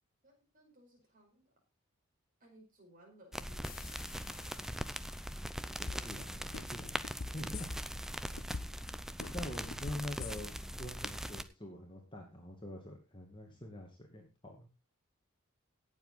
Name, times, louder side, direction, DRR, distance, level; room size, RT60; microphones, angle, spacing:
voice 1, 0.2-1.6 2.4-4.5 5.9-6.7 8.1-8.9 9.7-9.8, right 1 dB, 40° right, 0 dB, 5.2 m, -62 dB
sound 1, 3.3-11.4, equal, ahead, 0.6 m, -41 dB
sound 2, 3.6-7.2, left 10 dB, 40° left, 1.3 m, -58 dB
voice 2, 5.8-7.8 9.3-14.7, left 1 dB, 20° left, 1 dB, 2.3 m, -45 dB
sound 3, 5.9-6.2 6.5-8.1 8.4-8.9 9.2-10.7 11.0-11.1, left 4 dB, 65° left, 0.9 m, -42 dB
17.5 x 7.5 x 4.2 m, 0.28 s
head